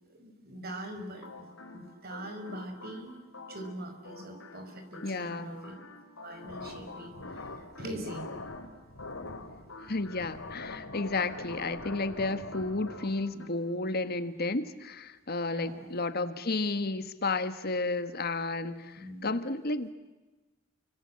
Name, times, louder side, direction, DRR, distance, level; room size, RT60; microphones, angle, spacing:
voice 1, 0.1-3.1 3.5-5.7 6.2-8.4 15.5-15.9 19.0-19.3, right 1 dB, 50° right, 6 dB, 5.7 m, -42 dB
sound 1, 1.1-13.5, left 2 dB, 70° left, 5.6 m, -50 dB
voice 2, 5.0-5.5 9.9-19.9, left 3 dB, 50° left, 11 dB, 1.5 m, -32 dB
sound 2, 6.4-13.3, left 2 dB, 85° left, 3.4 m, -43 dB
29.0 x 25.5 x 7.7 m, 1.2 s
head